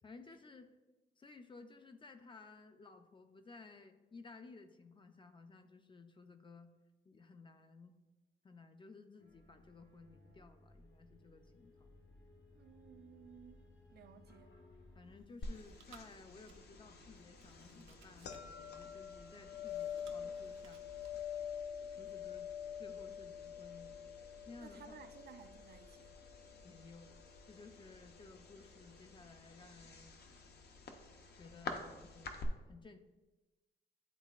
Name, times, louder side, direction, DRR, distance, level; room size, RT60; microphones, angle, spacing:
voice 1, 0.0-0.7 1.2-6.7 7.1-7.9 8.4-11.9 14.9-20.9 21.9-22.5 22.8-23.9 24.5-25.1 26.6-27.2 27.5-30.2 31.3-33.0, left 3 dB, 25° left, 0.4 m, -57 dB
sound 1, 9.2-15.2, left 2 dB, 80° left, 1.2 m, -62 dB
voice 2, 12.5-14.6 24.6-26.1, right 7 dB, 55° right, 0.4 m, -57 dB
Chewing mastication, 15.0-21.6, right 5 dB, 90° right, 0.7 m, -64 dB
sound 2, 15.4-32.5, left 6 dB, 55° left, 0.7 m, -47 dB
10.0 x 4.0 x 2.4 m
wide cardioid pair, 150°, 19 cm